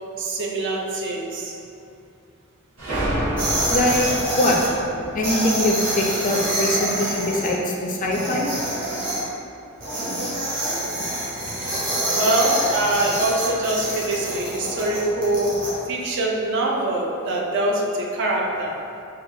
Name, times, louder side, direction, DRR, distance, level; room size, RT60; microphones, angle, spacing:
voice 1, 0.2-1.5 12.0-18.8, right 1 dB, 55° right, -1 dB, 0.4 m, -24 dB
sound 1, 2.8-7.2, right 1 dB, 85° right, 1.2 m, -30 dB
sound 2, 3.4-4.7 5.2-7.5 8.0-9.2 9.8-15.7, right 1 dB, 40° right, 0.9 m, -26 dB
voice 2, 3.7-4.1 4.4-4.6 5.1-8.5 11.6-11.8, left 1 dB, 35° left, -1 dB, 0.3 m, -23 dB
3.9 x 2.2 x 2.7 m, 2.5 s
head